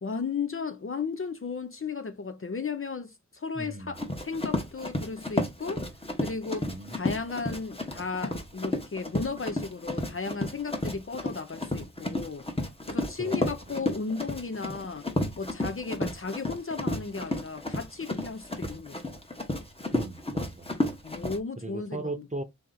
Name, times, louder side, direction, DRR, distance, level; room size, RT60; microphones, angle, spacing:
voice 1, 0.0-5.9 6.2-12.4 12.9-15.1 15.4-19.0 21.0-22.3, left 4 dB, 45° left, 0.6 m, -35 dB
voice 2, 3.5-4.0 6.6-7.0 13.2-13.5 19.9-20.8 21.6-22.4, right 2 dB, 25° right, 0.8 m, -37 dB
Run, 3.9-21.4, left 2 dB, 20° left, 1.1 m, -32 dB
3.8 x 2.9 x 3.8 m
wide cardioid pair, 55°, 30 cm